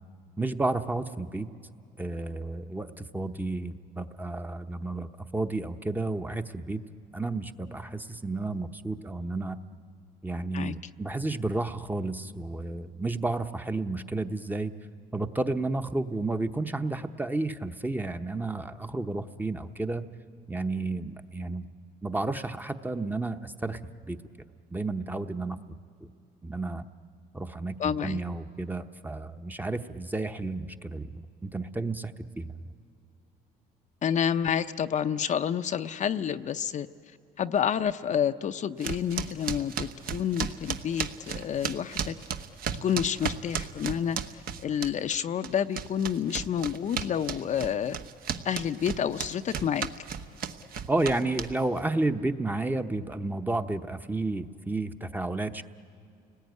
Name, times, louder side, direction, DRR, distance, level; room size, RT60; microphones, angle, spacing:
voice 1, 0.4-1.5 2.0-6.8 7.1-9.6 10.2-14.7 15.1-20.0 20.5-21.7 22.0-23.8 24.1-24.2 24.7-25.6 26.4-26.8 27.3-32.5 50.9-55.6, right 2 dB, 10° right, 8 dB, 0.9 m, -31 dB
voice 2, 27.8-28.2 34.0-36.9 37.4-42.1 42.8-44.2 44.6-48.0 48.4-49.9, left 8 dB, 45° left, 9 dB, 0.6 m, -29 dB
sound 1, 38.8-45.2 45.4-51.8, right 7 dB, 60° right, 1.1 m, -34 dB
29.5 x 19.5 x 9.4 m, 2.6 s
cardioid pair, 110°, 17 cm